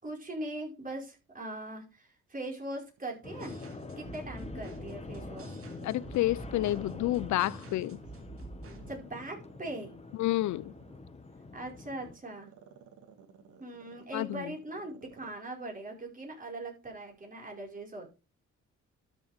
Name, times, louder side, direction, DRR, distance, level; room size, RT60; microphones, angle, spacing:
voice 1, 0.0-3.5 4.0-5.5 8.9-10.0 11.5-12.5 13.6-18.2, right 1 dB, 25° right, 5.0 m, -41 dB
Growling, 3.0-4.7 5.1-8.1 8.6-15.4 15.7-15.8, right 7 dB, 75° right, 2.3 m, -56 dB
sound 1, 3.2-12.2, left 3 dB, 20° left, 1.5 m, -45 dB
sound 2, 3.4-9.0, right 3 dB, 45° right, 2.7 m, -48 dB
voice 2, 5.8-8.0 10.2-10.7 14.1-14.5, left 16 dB, 70° left, 0.5 m, -29 dB
12.5 x 7.0 x 3.5 m
cardioid pair, 90°, 30 cm